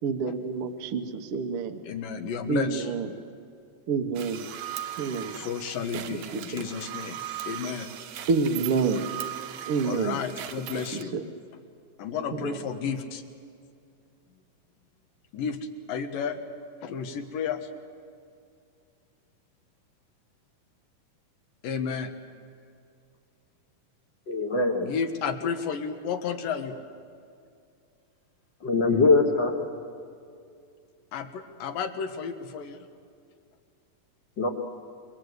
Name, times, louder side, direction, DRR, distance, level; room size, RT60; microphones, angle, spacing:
voice 1, 0.0-1.8 2.5-3.1 3.9-4.4 5.0-5.4 6.1-6.6 8.3-9.0 9.7-10.2 10.7-10.8 11.1-11.2 12.3-12.6, right 5 dB, 55° right, 5 dB, 1.7 m, -28 dB
voice 2, 1.8-2.9 5.3-7.9 9.8-11.1 12.0-13.2 15.3-15.6 15.9-16.4 16.7-17.7 21.6-22.1 24.8-26.8 31.1-32.9, left 6 dB, 75° left, 6 dB, 3.1 m, -32 dB
sound 1, 4.2-11.0, right 11 dB, 85° right, 2.9 m, -38 dB
voice 3, 24.3-24.9 28.6-29.5 34.4-34.5, left 3 dB, 45° left, 2 dB, 1.7 m, -22 dB
28.0 x 22.5 x 8.1 m, 2.4 s
omnidirectional pair, 4.0 m